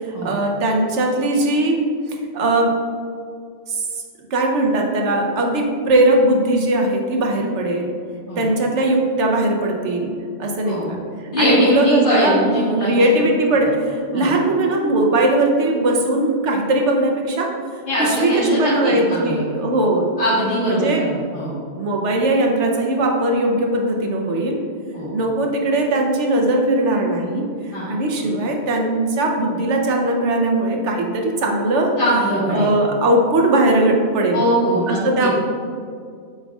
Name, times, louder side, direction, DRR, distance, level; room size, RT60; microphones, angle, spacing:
voice 1, 0.0-1.8 2.3-2.7 3.7-3.8 4.3-7.9 8.4-10.1 10.4-11.0 11.4-12.5 12.8-17.5 18.0-20.1 20.6-21.0 21.8-24.6 25.1-27.4 27.9-31.9 32.5-34.4 34.9-35.3, right 1 dB, 75° right, 1 dB, 1.2 m, -19 dB
voice 2, 11.3-13.0 14.1-14.3 17.9-19.4 20.2-21.5 24.9-25.1 27.7-28.3 32.0-32.7 34.3-35.3, equal, 45° left, -12 dB, 1.8 m, -21 dB
7.5 x 5.6 x 2.4 m, 2.2 s
omnidirectional pair, 1.2 m